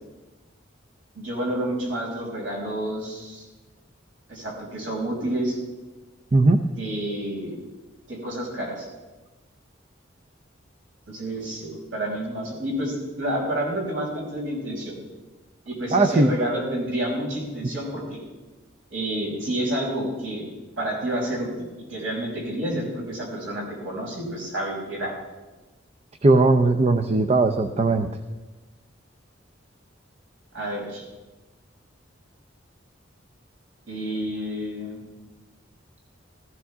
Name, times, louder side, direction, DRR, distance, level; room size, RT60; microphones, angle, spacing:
voice 1, 1.1-3.4 4.3-5.6 6.8-7.6 8.1-8.9 11.1-14.9 15.7-18.2 18.9-20.4 20.8-25.1 30.5-31.0 33.9-35.0, right 1 dB, 85° right, -3 dB, 5.9 m, -29 dB
voice 2, 15.9-16.3 26.2-28.1, right 2 dB, 35° right, 8 dB, 0.6 m, -18 dB
15.5 x 15.5 x 3.6 m, 1.1 s
head